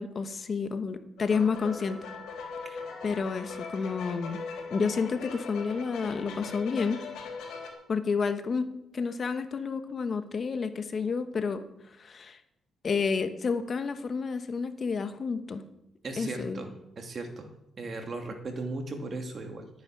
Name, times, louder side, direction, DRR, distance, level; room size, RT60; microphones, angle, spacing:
voice 1, 0.0-2.0 2.7-4.4 4.7-7.0 7.9-11.6 12.0-12.4 12.8-15.6 16.2-16.6, left 5 dB, 45° left, 9 dB, 1.2 m, -30 dB
sound 1, 1.2-7.7, left 5 dB, 80° left, 3.7 m, -40 dB
voice 2, 16.0-16.7 17.0-17.5 17.8-19.7, right 3 dB, 45° right, 4 dB, 2.5 m, -36 dB
13.0 x 9.5 x 6.2 m, 0.85 s
cardioid pair, 90°, 0 cm